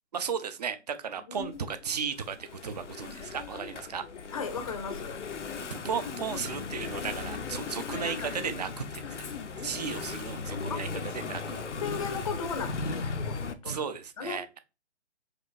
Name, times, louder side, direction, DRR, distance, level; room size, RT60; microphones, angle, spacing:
voice 1, 0.1-4.0 5.7-9.2 9.6-11.6 13.6-14.6, right 6 dB, 40° right, 0.4 m, -35 dB
voice 2, 1.3-1.7 4.3-5.2 11.8-13.4 13.6-13.8 14.2-14.5, left 5 dB, 30° left, 0.5 m, -36 dB
Engine / Mechanisms, 1.4-13.5, left 4 dB, 90° left, 0.7 m, -37 dB
4.9 x 2.4 x 3.2 m
figure-of-eight pair, 140°, 34 cm